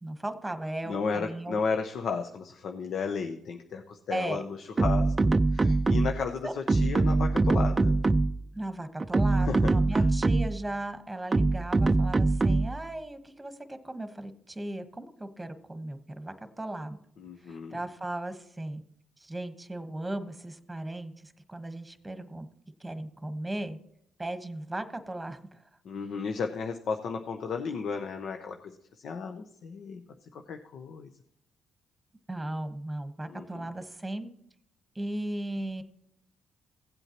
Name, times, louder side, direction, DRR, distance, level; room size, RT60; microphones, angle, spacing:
voice 1, 0.0-1.6 4.1-4.4 6.4-6.5 8.5-17.0 17.4-18.8 19.2-22.5 22.8-23.8 24.2-25.6 32.3-34.3 34.9-35.8, right 1 dB, 10° right, 9 dB, 1.2 m, -37 dB
voice 2, 0.9-8.0 9.4-10.1 17.2-17.8 25.8-28.8 29.0-30.0 30.3-31.1 33.3-33.6, left 5 dB, 65° left, 5 dB, 0.8 m, -34 dB
sound 1, 4.8-6.3 6.7-8.5 9.0-10.7 11.3-12.8, right 3 dB, 30° right, 0.4 m, -24 dB
16.5 x 7.9 x 3.0 m, 0.70 s
supercardioid pair, 65°, 0 cm